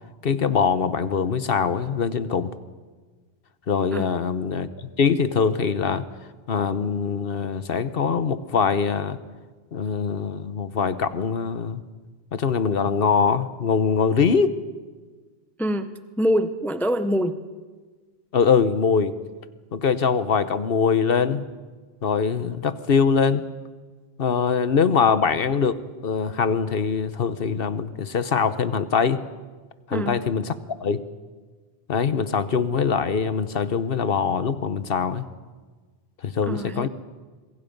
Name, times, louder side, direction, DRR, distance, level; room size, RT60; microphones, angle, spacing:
voice 1, 0.2-2.5 3.7-6.1 6.5-9.2 9.7-11.8 12.3-14.6 18.3-19.2 19.7-21.4 22.0-23.5 24.2-29.2 29.9-30.6 30.8-31.0 31.9-35.3 36.2-36.9, left 6 dB, 65° left, 13 dB, 1.1 m, -23 dB
voice 2, 3.9-4.3 15.6-15.9 16.2-17.4 29.9-30.2 36.5-36.9, equal, ahead, 10 dB, 0.8 m, -25 dB
26.5 x 23.0 x 5.3 m, 1.4 s
omnidirectional pair, 1.1 m